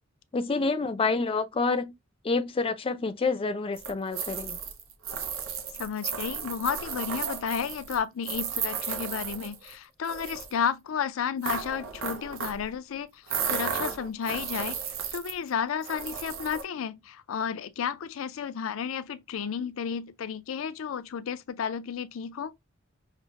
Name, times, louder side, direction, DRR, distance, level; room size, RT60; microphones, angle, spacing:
voice 1, 0.3-1.9 2.2-4.6, left 4 dB, 30° left, 0.4 m, -28 dB
sound 1, 3.8-9.7 10.0-10.5 11.4-12.7 13.3-15.5 15.8-16.6, right 7 dB, 85° right, 0.7 m, -34 dB
voice 2, 5.7-22.5, left 7 dB, 90° left, 0.4 m, -32 dB
5.8 x 2.1 x 2.8 m
head